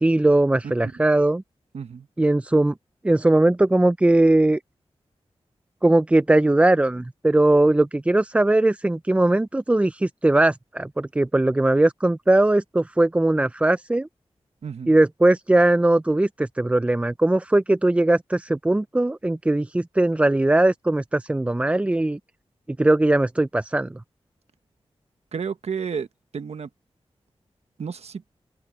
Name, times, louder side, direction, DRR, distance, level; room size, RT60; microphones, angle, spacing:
voice 1, 0.0-1.4 2.2-2.7 3.0-4.6 5.8-14.1 14.9-22.2 22.8-24.0, right 2 dB, 10° right, 0.3 m, -19 dB
voice 2, 1.7-2.1 14.6-14.9 25.3-26.1 26.3-26.7 27.8-28.2, right 6 dB, 80° right, 1.2 m, -31 dB
wide cardioid pair, 85°, 11 cm